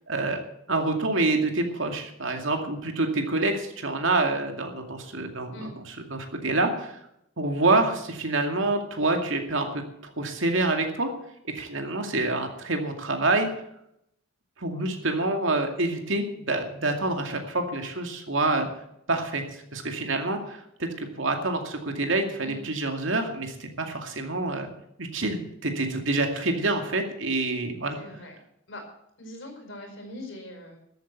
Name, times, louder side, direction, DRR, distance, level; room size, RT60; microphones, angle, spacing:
voice 1, 0.1-0.4 0.7-5.6 6.1-7.0 7.4-11.1 11.4-13.5 14.6-18.7 19.1-19.4 19.7-24.7 25.0-28.0, right 2 dB, 70° right, 4 dB, 2.4 m, -27 dB
voice 2, 27.9-28.4 28.7-28.8 29.2-30.8, left 1 dB, 65° left, 3 dB, 4.9 m, -41 dB
13.5 x 8.7 x 8.1 m, 0.77 s
head